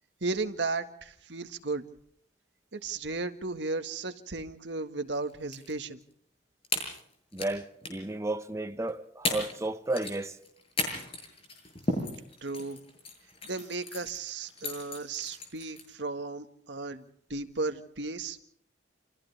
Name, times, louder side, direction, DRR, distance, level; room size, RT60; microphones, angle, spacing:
voice 1, 0.2-1.8 2.7-6.0 12.4-12.8 13.4-17.0 17.3-18.4, right 3 dB, 80° right, 1.8 m, -35 dB
sound 1, 5.3-5.7 6.0-6.1 6.6-7.5 7.8-8.1 8.9-9.0 9.2-9.6 9.8-15.9, left 2 dB, 35° left, 7.7 m, -35 dB
voice 2, 7.3-10.3, right 2 dB, 15° right, 0.8 m, -33 dB
29.5 x 28.0 x 3.5 m
head